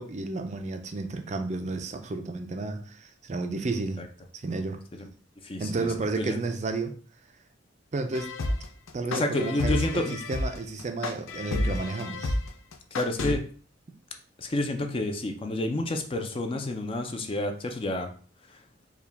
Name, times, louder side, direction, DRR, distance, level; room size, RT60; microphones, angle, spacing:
voice 1, 0.0-4.0 4.3-4.8 5.6-6.9 7.9-8.3 8.9-12.4, right 3 dB, 35° right, 6 dB, 0.4 m, -32 dB
voice 2, 5.4-5.9 6.2-6.4 9.1-10.2 12.9-13.5 14.4-18.1 18.5-18.6, left 1 dB, 30° left, 5 dB, 0.4 m, -29 dB
sound 1, 8.1-13.4, left 2 dB, 80° left, 0.6 m, -30 dB
4.6 x 2.3 x 3.4 m, 0.42 s
head